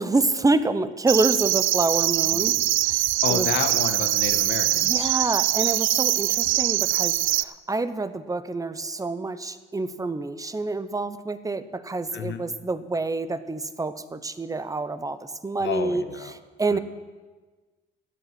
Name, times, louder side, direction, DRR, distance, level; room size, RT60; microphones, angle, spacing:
voice 1, 0.0-2.5 2.8-3.5 4.8-16.0 16.6-16.8, right 3 dB, 15° right, 13 dB, 0.8 m, -27 dB
sound 1, 1.1-7.4, right 16 dB, 85° right, 0.4 m, -23 dB
voice 2, 3.2-5.1 12.1-12.4 15.6-16.3 16.7-16.8, left 7 dB, 65° left, 8 dB, 1.4 m, -30 dB
12.5 x 8.2 x 8.1 m, 1.3 s
cardioid pair, 90°, 20 cm